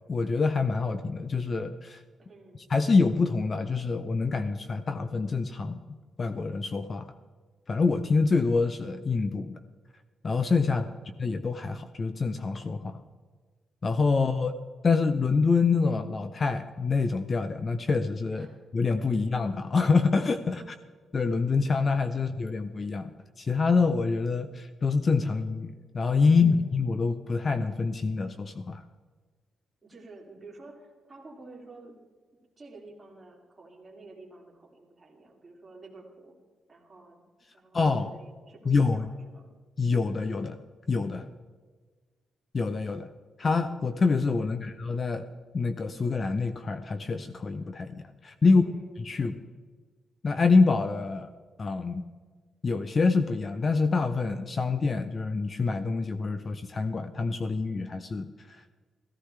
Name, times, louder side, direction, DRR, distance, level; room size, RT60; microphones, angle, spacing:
voice 1, 0.1-2.0 2.7-7.1 7.7-9.6 10.2-10.9 11.2-13.0 13.8-14.5 14.8-18.5 18.7-20.6 21.1-23.1 23.4-28.8 37.7-38.1 38.7-39.1 39.8-40.6 40.9-41.3 42.5-43.1 43.4-45.3 45.5-48.6 49.0-49.4 50.2-51.3 51.6-52.0 52.6-58.6, left 4 dB, 30° left, 10 dB, 0.6 m, -26 dB
voice 2, 2.2-2.6 10.7-11.3 18.3-18.6 19.1-19.2 20.4-20.7 22.1-22.3 26.3-26.7 29.8-32.0 32.6-36.4 36.7-37.2 37.5-39.5 44.4-44.7 48.4-49.4, right 2 dB, 20° right, -2 dB, 2.8 m, -50 dB
15.5 x 14.5 x 3.3 m, 1.5 s
cardioid pair, 150°, 0 cm